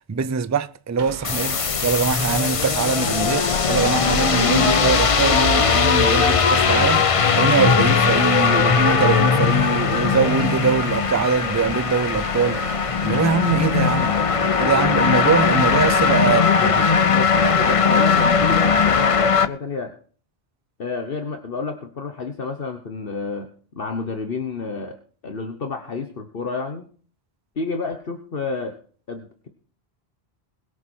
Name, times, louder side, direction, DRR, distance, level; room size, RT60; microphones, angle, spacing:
voice 1, 0.1-12.6 13.0-14.1 14.6-16.4 17.4-17.5, right 5 dB, 25° right, 0.4 m, -22 dB
sound 1, 1.0-14.7, right 4 dB, 45° right, 1.2 m, -38 dB
sound 2, 1.2-19.5, left 5 dB, 35° left, 0.6 m, -19 dB
voice 2, 16.2-17.3 17.6-19.9 20.8-23.5 23.7-25.0 25.2-26.9 27.6-28.8 29.1-29.5, left 4 dB, 60° left, 1.4 m, -30 dB
22.0 x 7.4 x 4.5 m
omnidirectional pair, 1.1 m